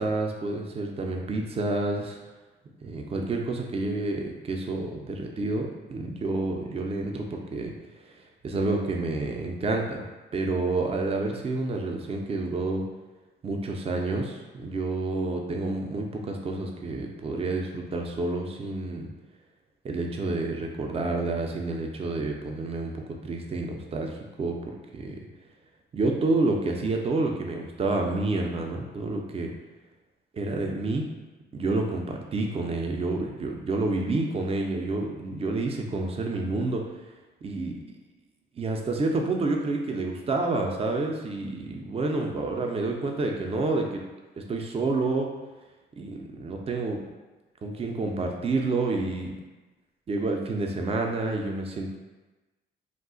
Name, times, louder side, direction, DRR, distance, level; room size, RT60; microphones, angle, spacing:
voice 1, 0.0-2.2 2.8-7.7 8.4-10.0 10.3-12.8 13.4-19.1 19.8-25.2 25.9-29.5 30.3-31.1 31.5-36.8 37.4-37.8 38.6-44.0 44.4-45.3 46.0-47.0 47.6-49.3 50.1-52.0, right 2 dB, 30° right, 2 dB, 0.4 m, -29 dB
2.3 x 2.1 x 3.7 m, 1.2 s
cardioid pair, 90°, 20 cm